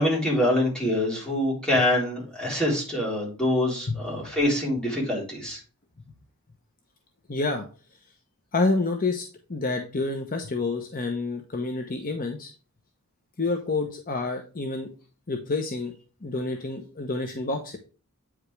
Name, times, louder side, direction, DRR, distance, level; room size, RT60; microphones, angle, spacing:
voice 1, 0.0-5.6, left 1 dB, 5° left, -5 dB, 3.6 m, -25 dB
voice 2, 7.3-7.7 8.5-12.5 13.4-14.9 15.3-15.9 16.2-17.8, left 3 dB, 40° left, 4 dB, 0.9 m, -28 dB
8.8 x 5.0 x 3.3 m, 0.37 s
head